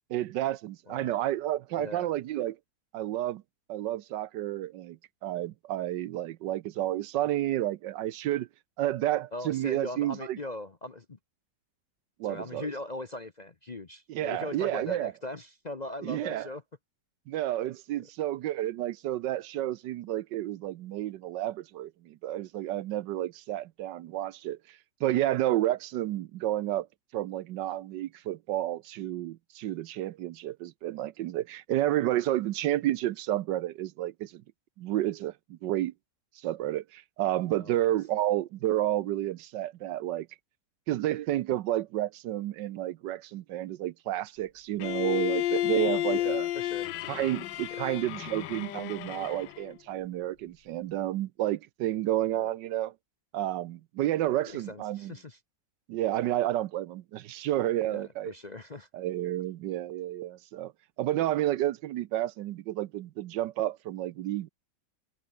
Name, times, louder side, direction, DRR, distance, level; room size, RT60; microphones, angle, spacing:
voice 1, 0.1-2.6 2.9-3.4 3.7-8.5 8.8-10.4 12.2-12.7 14.1-15.1 16.0-16.5 17.3-26.9 27.1-34.4 34.8-35.9 36.4-40.3 40.9-46.5 47.1-52.9 53.3-55.1 55.9-58.3 58.9-60.7 61.0-64.5, right 14 dB, 75° right, 1.3 m, -31 dB
voice 2, 1.8-2.1 9.3-11.2 12.2-16.6 37.6-38.0 46.1-46.9 47.7-47.9 52.3-52.5 54.4-55.4 57.9-58.9, left 2 dB, 30° left, 0.8 m, -40 dB
Bowed string instrument, 44.8-49.7, left 14 dB, 80° left, 1.4 m, -31 dB
omnidirectional pair, 2.0 m